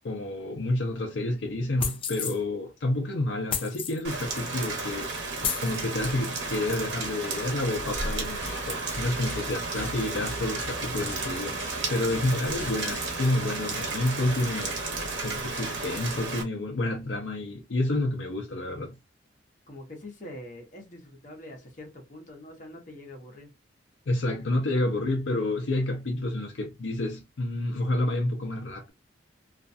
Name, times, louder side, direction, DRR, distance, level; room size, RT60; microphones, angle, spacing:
voice 1, 0.0-5.1 5.6-11.6 11.9-14.8 15.2-19.0 24.1-28.9, left 1 dB, 80° left, 0.6 m, -29 dB
sound 1, 1.8-2.4 3.5-4.0 4.8-4.9 5.4-5.7, left 7 dB, 30° left, 0.4 m, -31 dB
Rain, 4.0-16.4, right 3 dB, 70° right, 1.0 m, -33 dB
sound 2, 7.9-13.3, equal, 15° left, 0.8 m, -43 dB
voice 2, 19.7-23.5, left 1 dB, 45° left, 0.9 m, -44 dB
2.5 x 2.3 x 2.5 m
head